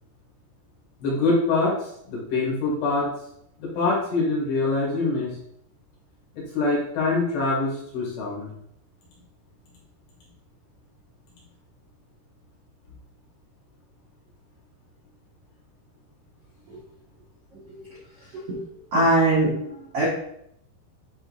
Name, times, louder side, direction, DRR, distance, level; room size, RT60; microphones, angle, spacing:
voice 1, 1.0-1.7 2.1-3.1 3.6-5.3 6.4-8.5, left 3 dB, 60° left, -5 dB, 4.1 m, -24 dB
voice 2, 17.5-17.9 18.3-18.6 18.9-20.0, right 1 dB, 80° right, -7 dB, 1.3 m, -22 dB
10.0 x 4.3 x 2.6 m, 0.73 s
omnidirectional pair, 5.7 m